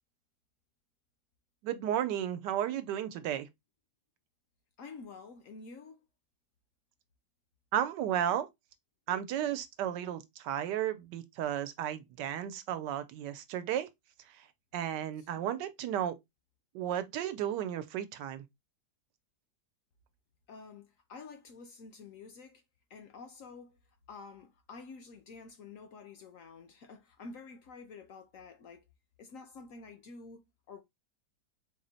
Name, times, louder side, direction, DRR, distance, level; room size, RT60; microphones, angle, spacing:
voice 1, 1.6-3.5 7.7-8.5 9.1-13.9 14.3-14.5 14.7-16.2 16.7-18.5, right 10 dB, 90° right, 1.3 m, -33 dB
voice 2, 4.8-6.0 15.2-15.5 20.5-22.6 22.9-23.8 24.1-28.9 29.2-30.8, left 4 dB, 65° left, 0.9 m, -49 dB
4.4 x 2.0 x 3.9 m
omnidirectional pair, 1.8 m